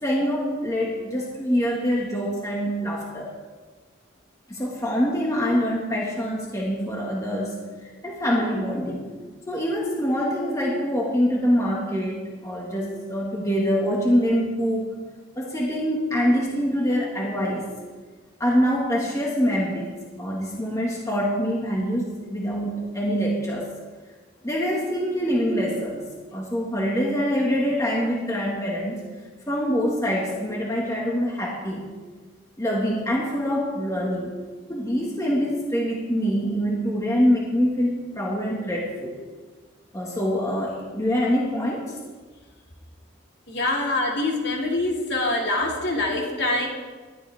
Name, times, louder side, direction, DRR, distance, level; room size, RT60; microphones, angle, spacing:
voice 1, 0.0-3.3 4.5-7.6 8.0-9.0 9.5-14.9 15.4-17.7 18.4-19.9 20.2-23.7 24.4-26.0 26.3-29.0 29.5-31.9 32.6-34.4 34.7-39.2 39.9-42.0 43.7-43.8, equal, 15° left, -3 dB, 1.8 m, -25 dB
voice 2, 43.5-46.7, left 2 dB, 55° left, -1 dB, 2.5 m, -24 dB
20.0 x 12.0 x 3.6 m, 1.4 s
head